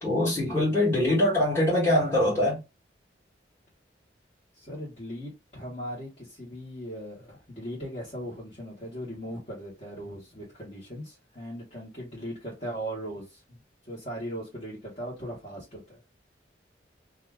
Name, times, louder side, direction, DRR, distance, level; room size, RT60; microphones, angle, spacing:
voice 1, 0.0-2.6, left 1 dB, 15° left, 1.2 m, -23 dB
voice 2, 4.5-16.0, equal, 40° left, 1.2 m, -39 dB
2.7 x 2.4 x 3.4 m
head